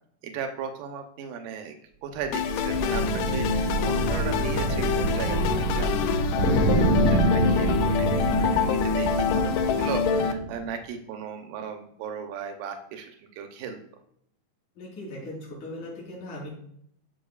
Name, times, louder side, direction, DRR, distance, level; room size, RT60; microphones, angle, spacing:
voice 1, 0.2-1.8 2.0-13.8, right 7 dB, 90° right, 5 dB, 2.5 m, -37 dB
sound 1, 2.1-10.6, right 2 dB, 50° right, 1.3 m, -27 dB
sound 2, 2.3-10.3, left 6 dB, 80° left, 2.2 m, -26 dB
voice 2, 14.8-16.5, left 1 dB, 65° left, -5 dB, 5.1 m, -38 dB
14.0 x 5.5 x 2.4 m, 0.69 s
omnidirectional pair, 3.7 m